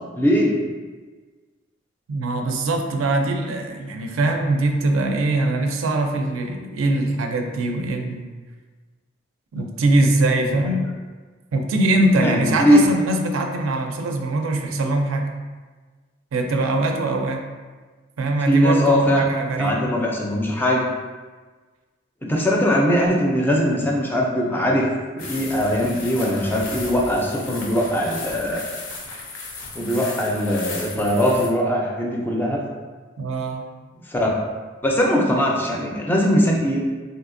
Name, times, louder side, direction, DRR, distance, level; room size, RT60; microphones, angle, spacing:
voice 1, 0.1-0.6 10.7-10.8 12.2-12.8 18.5-19.2 19.6-20.8 22.3-24.9 25.1-28.6 29.8-32.7 34.1-34.3 34.8-36.8, equal, 10° left, -1 dB, 0.3 m, -20 dB
voice 2, 2.1-8.3 9.5-10.9 11.5-15.3 16.3-17.4 18.2-19.8 33.2-33.7, right 2 dB, 80° right, 4 dB, 0.4 m, -22 dB
sound 1, 25.2-31.5, left 3 dB, 70° left, 0.6 m, -35 dB
3.3 x 2.7 x 2.5 m, 1.4 s
head